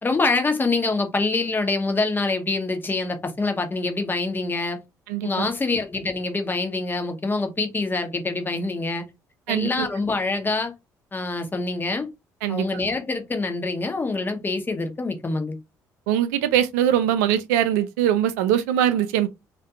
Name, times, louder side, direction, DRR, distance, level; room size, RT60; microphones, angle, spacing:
voice 1, 0.0-4.8 5.2-9.0 9.5-10.7 11.1-12.1 12.5-15.6, left 3 dB, 25° left, 0.8 m, -25 dB
voice 2, 5.1-5.5 9.5-9.9 12.4-12.7 16.1-19.3, right 10 dB, 85° right, 0.4 m, -22 dB
2.3 x 2.2 x 2.7 m
hypercardioid pair, 60°, 9 cm